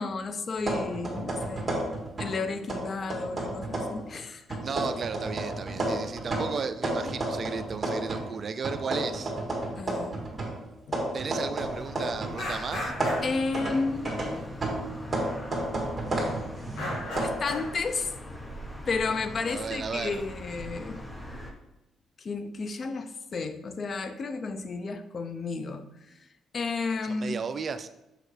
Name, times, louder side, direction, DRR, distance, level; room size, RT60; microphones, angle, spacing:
voice 1, 0.0-1.7 2.2-4.6 9.8-10.2 10.9-11.0 13.2-14.5 17.1-18.1 18.9-21.0 22.2-25.8 26.5-27.4, left 4 dB, 45° left, 9 dB, 0.6 m, -32 dB
sound 1, 0.6-2.4 2.7-4.0 4.5-8.3 8.6-12.4 12.7-17.3, right 1 dB, 25° right, 2.0 m, -32 dB
voice 2, 4.6-9.3 11.1-12.9 19.5-20.2 27.0-27.9, right 5 dB, 45° right, 11 dB, 0.4 m, -34 dB
sound 2, 11.6-21.5, left 1 dB, 20° left, 1.1 m, -42 dB
sound 3, 12.4-13.4 14.4-14.5 15.4-15.6 16.0-16.2 16.6-17.7, left 1 dB, 80° left, 2.3 m, -35 dB
6.5 x 5.5 x 3.3 m, 0.93 s
cardioid pair, 90°, 0 cm